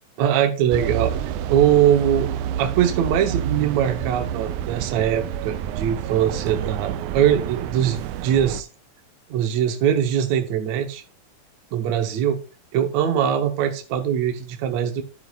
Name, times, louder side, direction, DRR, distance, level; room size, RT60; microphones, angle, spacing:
voice 1, 0.2-1.1 1.5-2.3 2.6-8.7 9.3-11.0 11.7-12.4 12.7-15.0, right 9 dB, 70° right, 2.2 m, -21 dB
sound 1, 0.7-8.6, right 10 dB, 90° right, 2.1 m, -29 dB
12.5 x 8.9 x 2.4 m
omnidirectional pair, 3.4 m